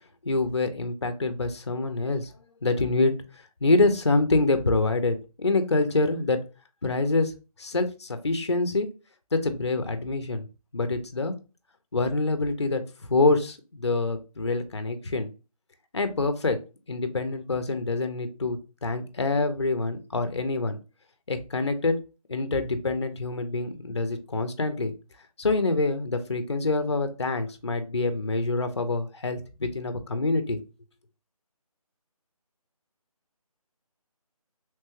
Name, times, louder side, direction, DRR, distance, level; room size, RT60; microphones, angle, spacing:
voice 1, 0.2-2.3 2.6-3.1 3.6-6.4 6.8-7.3 7.6-8.9 9.3-10.5 10.7-11.4 11.9-15.3 15.9-16.6 16.9-20.8 21.3-21.9 22.3-24.9 25.4-30.6, left 3 dB, 45° left, 9 dB, 0.4 m, -26 dB
3.1 x 2.1 x 3.0 m, 0.31 s
figure-of-eight pair, 180°, 20 cm